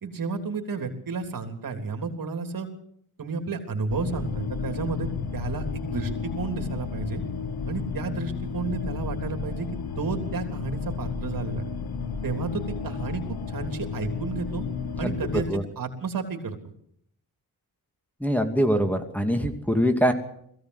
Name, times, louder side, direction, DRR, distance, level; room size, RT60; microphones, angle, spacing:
voice 1, 0.0-2.7 3.2-7.2 7.7-9.7 10.0-11.7 12.2-14.6 15.0-15.5 15.8-16.6, right 4 dB, 60° right, 6 dB, 3.5 m, -32 dB
sound 1, 3.9-15.5, left 5 dB, 75° left, 1.5 m, -32 dB
voice 2, 18.2-20.1, equal, 5° left, 6 dB, 2.5 m, -23 dB
21.0 x 16.0 x 8.2 m, 0.71 s
cardioid pair, 80°, 38 cm